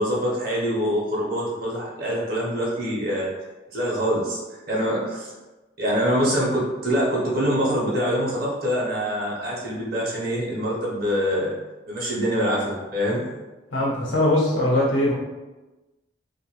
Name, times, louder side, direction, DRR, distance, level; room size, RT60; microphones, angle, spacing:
voice 1, 0.0-3.3 3.7-5.3 5.8-11.5 11.9-13.2, equal, 50° right, -5 dB, 0.9 m, -24 dB
voice 2, 13.7-15.1, left 1 dB, 80° left, -4 dB, 0.9 m, -21 dB
2.6 x 2.4 x 3.0 m, 1.1 s
head